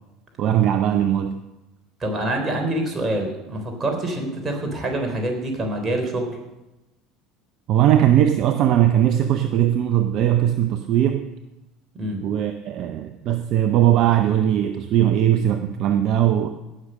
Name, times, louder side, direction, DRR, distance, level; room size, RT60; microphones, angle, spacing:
voice 1, 0.4-1.4 7.7-11.3 12.2-16.5, right 11 dB, 50° right, 9 dB, 0.7 m, -19 dB
voice 2, 2.0-6.4 12.0-12.2, right 1 dB, 30° right, 3 dB, 3.5 m, -26 dB
17.5 x 6.5 x 6.3 m, 1.0 s
hypercardioid pair, 70°, 0 cm